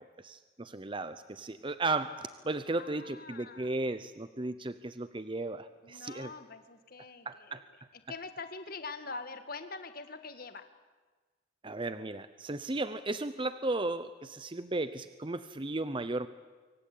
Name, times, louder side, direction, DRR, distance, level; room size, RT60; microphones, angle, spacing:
voice 1, 0.0-6.3 7.3-7.6 11.6-16.3, right 2 dB, 25° right, 12 dB, 0.7 m, -35 dB
voice 2, 2.8-3.7 5.8-10.7, left 4 dB, 50° left, 9 dB, 1.8 m, -44 dB
25.5 x 24.0 x 8.6 m, 1.3 s
head